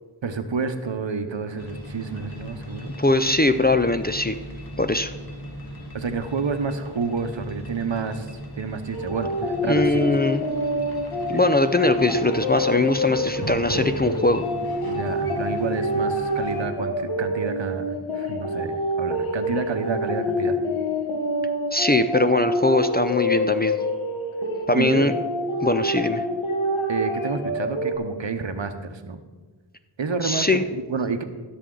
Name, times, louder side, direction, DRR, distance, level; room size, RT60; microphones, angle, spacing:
voice 1, 0.2-2.9 5.9-8.3 8.6-10.0 14.8-20.6 24.7-25.1 26.9-29.2 30.0-31.2, right 5 dB, 65° right, 9 dB, 0.9 m, -29 dB
sound 1, 1.6-16.7, left 1 dB, 50° left, 1.5 m, -37 dB
voice 2, 3.0-4.3 4.8-5.1 9.6-10.4 11.3-14.4 21.7-23.8 24.7-25.1 25.6-26.2 30.2-30.6, left 2 dB, 20° left, 9 dB, 0.4 m, -21 dB
sound 2, 8.9-28.0, left 1 dB, 90° left, 1.3 m, -27 dB
15.5 x 6.8 x 3.8 m, 1.4 s
wide cardioid pair, 40°, 48 cm